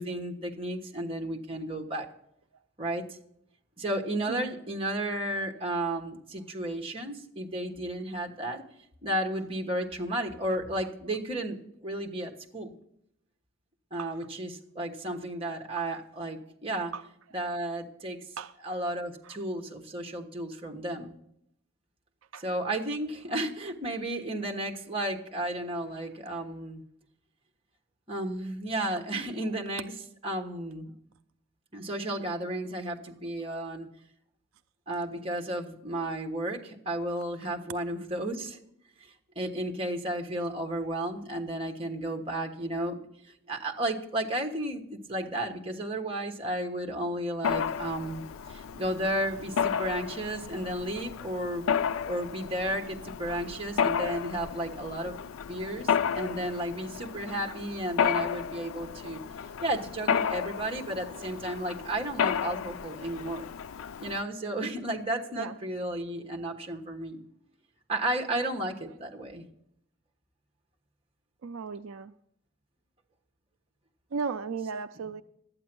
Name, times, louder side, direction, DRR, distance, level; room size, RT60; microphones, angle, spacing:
voice 1, 0.0-2.1 2.8-3.2 3.8-8.6 9.0-12.7 13.9-16.9 17.3-18.2 18.6-21.2 22.4-26.8 28.1-29.9 30.2-30.9 31.7-33.9 34.9-38.6 39.0-43.0 43.2-51.7 52.1-55.2 55.5-59.2 59.6-63.4 64.0-67.2 67.9-69.4, right 1 dB, 25° right, 2 dB, 1.3 m, -33 dB
voice 2, 14.0-14.3 15.8-16.0 16.9-17.1 18.4-18.5 19.2-19.4 22.3-22.4 65.3-65.6 71.4-72.1 74.1-75.2, right 5 dB, 80° right, 11 dB, 0.4 m, -36 dB
Mechanisms, 47.4-64.2, left 7 dB, 85° left, 0.4 m, -32 dB
12.0 x 8.8 x 6.1 m, 0.74 s
head